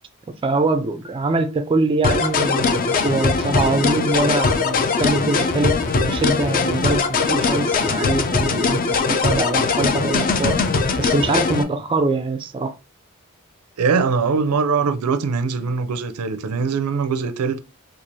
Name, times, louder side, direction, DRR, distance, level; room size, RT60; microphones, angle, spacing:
voice 1, 0.4-10.6 11.0-12.7, right 3 dB, 25° right, 0.3 m, -23 dB
sound 1, 2.0-11.6, left 4 dB, 40° left, 0.5 m, -20 dB
voice 2, 13.8-17.6, right 5 dB, 85° right, 0.5 m, -22 dB
4.5 x 2.4 x 2.6 m
head